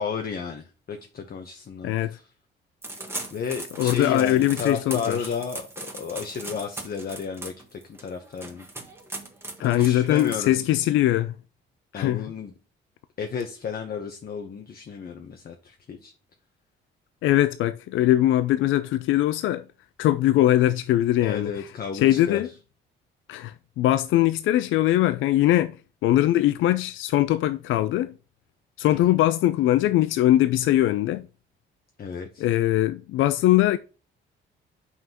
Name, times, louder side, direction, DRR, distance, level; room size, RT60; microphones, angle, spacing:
voice 1, 0.0-2.3 3.3-8.6 9.6-10.6 11.9-12.5 13.2-16.1 21.2-22.5 28.9-29.2 32.0-32.4, left 6 dB, 50° left, 0.9 m, -33 dB
voice 2, 1.8-2.2 3.8-5.2 9.6-11.3 12.0-12.2 17.2-19.6 20.0-21.7 21.9-22.5 23.3-25.8 26.0-28.1 28.8-31.3 32.4-33.8, left 14 dB, 80° left, 0.4 m, -21 dB
sound 1, 2.8-10.8, right 2 dB, 10° right, 1.4 m, -39 dB
7.4 x 5.8 x 2.9 m
cardioid pair, 90°, 20 cm